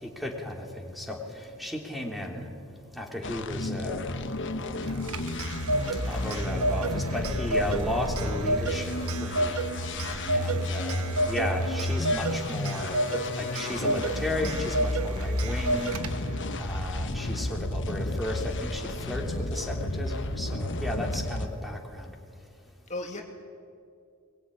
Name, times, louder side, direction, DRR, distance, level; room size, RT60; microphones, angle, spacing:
voice 1, 0.0-1.2 1.6-2.4 2.9-4.3 4.9-5.1 6.0-9.6 10.3-15.9 16.6-19.3 19.5-22.1, left 1 dB, ahead, 1 dB, 3.2 m, -34 dB
sound 1, 3.2-21.5, left 2 dB, 60° left, 1.4 m, -32 dB
Clock, 4.8-16.4, right 2 dB, 85° right, 1.3 m, -31 dB
voice 2, 10.3-10.7 22.9-23.2, left 2 dB, 35° left, 2 dB, 2.4 m, -37 dB
22.0 x 21.5 x 9.9 m, 2.3 s
head